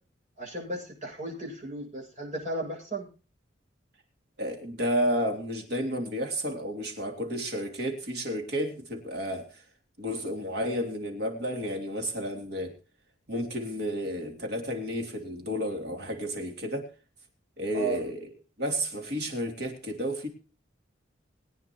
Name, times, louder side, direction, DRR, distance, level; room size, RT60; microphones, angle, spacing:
voice 1, 0.4-3.1 17.7-18.0, right 2 dB, 40° right, -2 dB, 6.9 m, -35 dB
voice 2, 4.4-9.6 10.0-12.7 13.3-16.9 17.6-18.3 18.6-20.3, equal, 60° right, 3 dB, 3.1 m, -31 dB
22.0 x 9.4 x 3.0 m, 0.35 s
head